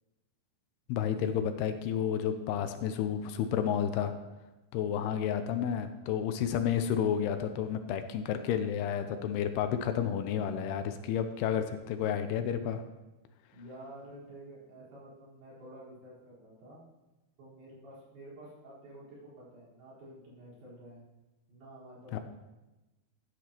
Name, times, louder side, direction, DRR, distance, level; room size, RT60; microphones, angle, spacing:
voice 1, 0.9-4.1 4.7-12.8 22.1-22.2, left 8 dB, 80° left, 8 dB, 2.6 m, -31 dB
voice 2, 13.5-16.8 17.4-21.0 21.5-22.2, right 1 dB, 70° right, -9 dB, 6.4 m, -50 dB
13.5 x 9.7 x 3.0 m, 1.0 s
omnidirectional pair, 4.8 m